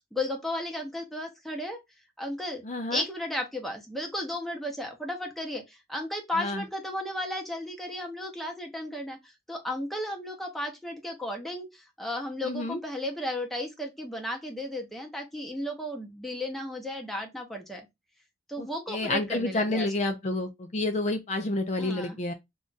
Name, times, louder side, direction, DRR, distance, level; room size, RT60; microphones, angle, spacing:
voice 1, 0.1-1.8 2.2-2.6 2.9-9.2 9.5-17.8 18.5-20.2 21.8-22.2, left 1 dB, ahead, 0.7 m, -34 dB
voice 2, 2.6-3.0 6.4-6.6 12.4-12.8 18.6-22.3, left 2 dB, 40° left, 0.4 m, -29 dB
2.4 x 2.3 x 3.8 m
head